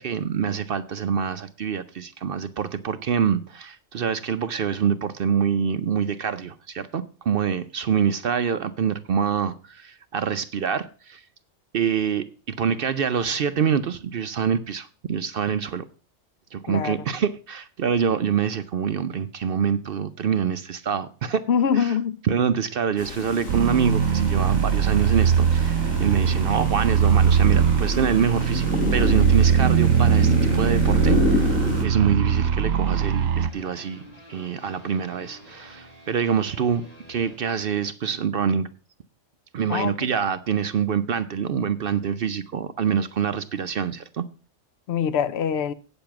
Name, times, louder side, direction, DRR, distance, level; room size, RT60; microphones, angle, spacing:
voice 1, 0.0-11.2 11.7-15.8 16.5-21.5 21.7-22.0 22.2-28.7 28.9-31.5 31.8-34.0 34.3-36.8 37.1-38.7 39.5-44.2, right 7 dB, 55° right, 0.7 m, -25 dB
voice 2, 21.5-22.2 39.7-39.9 44.9-45.7, left 7 dB, 60° left, 0.8 m, -23 dB
sound 1, 23.0-31.9, left 5 dB, 90° left, 1.9 m, -30 dB
sound 2, 23.5-33.5, right 7 dB, 85° right, 1.1 m, -20 dB
sound 3, 26.8-37.4, left 1 dB, 30° left, 3.3 m, -48 dB
8.8 x 7.0 x 5.8 m
omnidirectional pair, 1.4 m